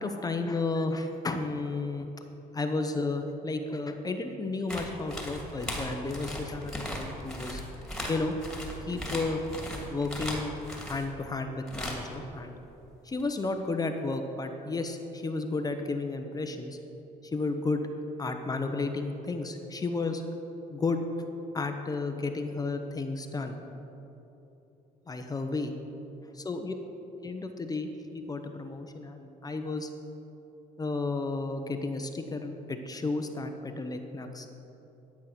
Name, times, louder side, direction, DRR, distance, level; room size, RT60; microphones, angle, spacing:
voice 1, 0.0-2.1 2.5-7.6 8.1-8.3 8.8-9.4 9.9-10.5 10.9-12.5 13.0-16.8 17.2-17.8 18.2-20.2 20.7-21.0 21.5-23.6 25.1-25.7 26.4-26.7 27.2-29.9 30.8-34.5, left 3 dB, 20° left, 5 dB, 0.9 m, -32 dB
sound 1, 4.7-11.1 11.7-12.1 13.2-13.3, left 1 dB, 5° left, 2.5 m, -37 dB
12.0 x 8.5 x 6.0 m, 3.0 s
cardioid pair, 110°, 17 cm